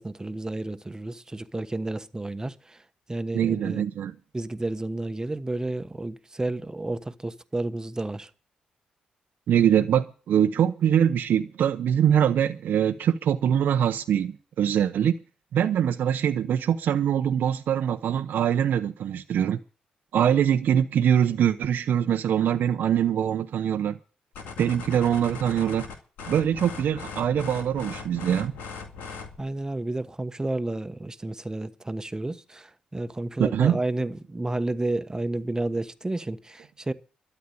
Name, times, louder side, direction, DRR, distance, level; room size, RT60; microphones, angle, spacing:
voice 1, 0.0-2.8 3.1-3.8 4.3-8.3 29.4-36.9, right 2 dB, 20° right, 1.2 m, -31 dB
voice 2, 3.3-4.1 9.5-15.2 15.5-19.6 20.1-24.0 24.6-25.8 26.3-28.5 33.4-33.8, right 9 dB, 70° right, 0.8 m, -23 dB
sound 1, 24.4-29.4, left 5 dB, 75° left, 2.1 m, -39 dB
13.0 x 8.1 x 8.5 m
hypercardioid pair, 45°, 3 cm